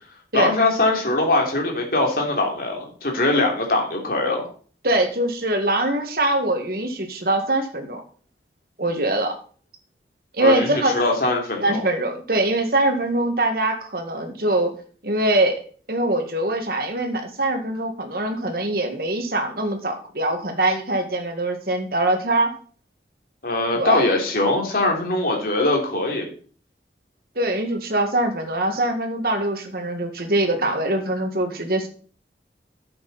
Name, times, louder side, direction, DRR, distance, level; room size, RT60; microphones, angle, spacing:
voice 1, 0.3-4.5 10.4-11.8 23.4-26.3, left 2 dB, 55° left, 1 dB, 3.2 m, -22 dB
voice 2, 4.8-8.0 8.8-9.3 10.3-10.9 11.6-14.7 15.0-15.6 15.9-22.6 23.7-24.0 27.4-31.9, right 1 dB, 55° right, 4 dB, 2.0 m, -23 dB
11.5 x 8.0 x 4.3 m, 0.43 s
head